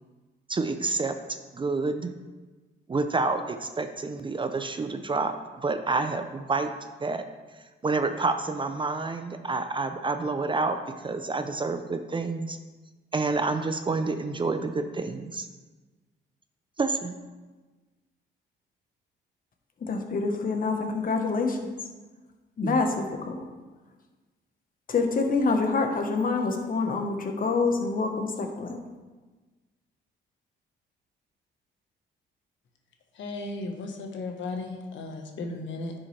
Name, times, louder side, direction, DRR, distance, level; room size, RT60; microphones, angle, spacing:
voice 1, 0.5-1.2 1.5-2.2 2.9-6.7 7.0-7.2 7.8-12.6 13.1-15.5 16.8-17.2 22.6-22.8, right 3 dB, 25° right, 8 dB, 0.5 m, -28 dB
voice 2, 19.8-21.7 22.6-23.4 24.9-28.8, left 4 dB, 45° left, 4 dB, 1.2 m, -26 dB
voice 3, 33.1-35.9, left 2 dB, 70° left, 3 dB, 1.3 m, -35 dB
10.5 x 6.2 x 3.3 m, 1.3 s
cardioid pair, 90°, 20 cm